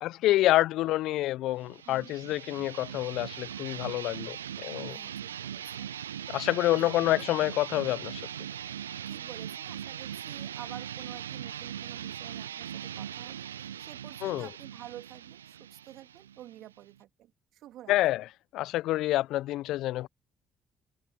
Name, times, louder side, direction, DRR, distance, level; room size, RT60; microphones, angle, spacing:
voice 1, 0.0-5.0 6.3-8.3 14.2-14.5 17.9-18.2 18.5-20.1, left 16 dB, 65° left, 0.8 m, -27 dB
sound 1, 1.6-17.0, right 9 dB, 85° right, 0.3 m, -40 dB
voice 2, 1.9-2.2 4.9-5.9 6.7-7.1 9.1-13.4 13.8-17.9, right 13 dB, 65° right, 2.5 m, -49 dB
figure-of-eight pair, 45°, 0 cm